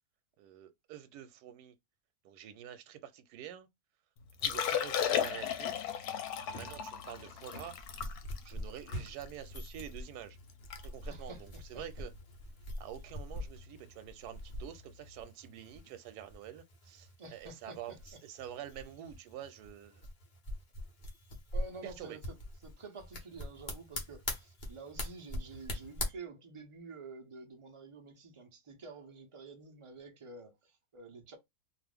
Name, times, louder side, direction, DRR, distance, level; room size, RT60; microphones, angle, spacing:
voice 1, 0.4-1.7 2.2-3.7 4.4-5.7 6.5-8.1 8.4-10.4 10.8-12.1 12.8-20.1 21.8-22.2, right 10 dB, 90° right, 1.1 m, -47 dB
sound 1, 4.2-4.7 6.5-7.9 8.9-9.4, equal, 55° left, 1.2 m, -46 dB
Liquid, 4.3-9.7 10.1-10.2 10.5-10.8 11.1-11.3 11.9-12.1 13.6-13.7, left 9 dB, 85° left, 1.1 m, -35 dB
sound 2, 7.7-26.1, left 1 dB, 40° left, 0.8 m, -43 dB
voice 2, 11.1-11.8 17.2-17.8 21.5-22.2 22.6-31.4, right 4 dB, 35° right, 0.5 m, -49 dB
2.5 x 2.5 x 3.4 m
omnidirectional pair, 1.6 m